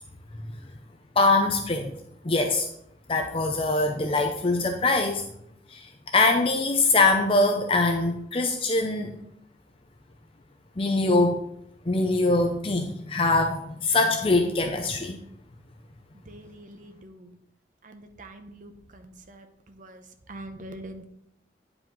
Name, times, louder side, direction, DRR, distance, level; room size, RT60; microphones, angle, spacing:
voice 1, 1.2-1.9 2.2-2.7 3.1-5.2 5.7-9.1 10.8-11.4 11.9-15.2, left 2 dB, 30° left, 4 dB, 0.5 m, -23 dB
voice 2, 16.1-17.4 17.8-21.0, right 1 dB, 45° right, 7 dB, 0.8 m, -44 dB
9.9 x 4.9 x 3.8 m, 0.75 s
head